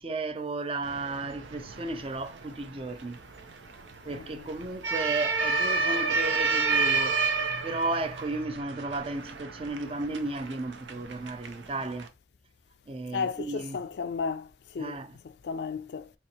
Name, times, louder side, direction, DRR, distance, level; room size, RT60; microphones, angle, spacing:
voice 1, 0.0-3.2 4.0-7.2 7.6-12.1 12.9-13.8 14.8-15.2, right 2 dB, 30° right, 0.4 m, -34 dB
sound 1, 0.8-12.1, right 4 dB, 90° right, 0.7 m, -31 dB
voice 2, 4.0-4.5 13.1-14.5 14.7-15.0 15.4-16.1, left 5 dB, 70° left, 0.4 m, -33 dB
4.3 x 2.8 x 2.9 m
head